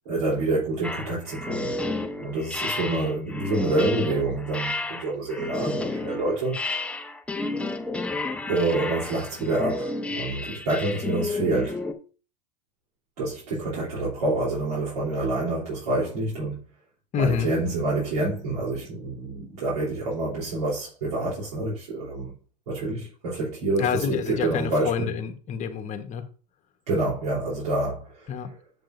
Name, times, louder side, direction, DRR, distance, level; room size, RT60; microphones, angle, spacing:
voice 1, 0.1-1.7 2.2-6.6 8.5-11.8 13.2-16.6 17.2-22.3 22.7-25.1 26.9-28.3, right 2 dB, 70° right, 3.7 m, -27 dB
sound 1, 0.8-11.9, left 2 dB, 5° left, 0.9 m, -31 dB
voice 2, 17.1-17.5 23.8-26.2 28.3-28.5, left 7 dB, 35° left, 1.4 m, -27 dB
8.0 x 7.4 x 2.7 m
hypercardioid pair, 100°, 21 cm